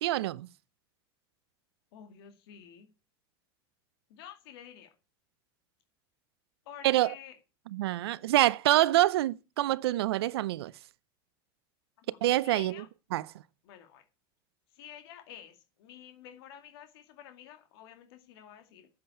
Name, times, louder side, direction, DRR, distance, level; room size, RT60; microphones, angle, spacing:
voice 1, 0.0-0.5 6.8-7.1 7.7-10.7 12.2-12.8 13.1-13.2, right 15 dB, 80° right, 0.6 m, -26 dB
voice 2, 1.9-2.9 4.1-4.9 6.7-7.3 12.0-12.2 12.4-12.9 13.6-14.0 14.7-18.9, left 10 dB, 70° left, 2.3 m, -50 dB
7.8 x 7.5 x 8.3 m
hypercardioid pair, 105°, 13 cm